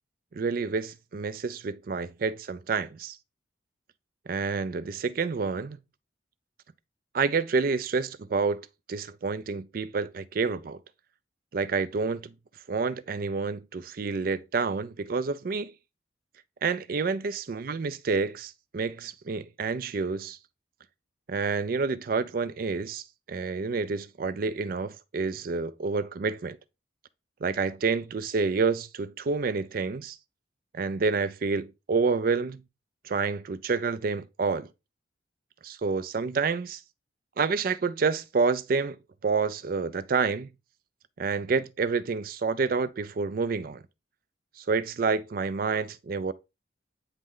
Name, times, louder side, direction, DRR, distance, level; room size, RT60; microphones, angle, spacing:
voice 1, 0.3-3.2 4.3-5.8 7.1-8.6 8.9-10.8 11.5-12.3 12.7-15.7 16.6-20.4 21.3-26.6 27.4-30.2 30.7-32.6 33.0-34.7 35.6-36.8 37.4-39.0 39.2-40.5 41.2-43.8 44.7-46.3, right 4 dB, 50° right, 0.4 m, -28 dB
8.8 x 3.1 x 3.7 m
head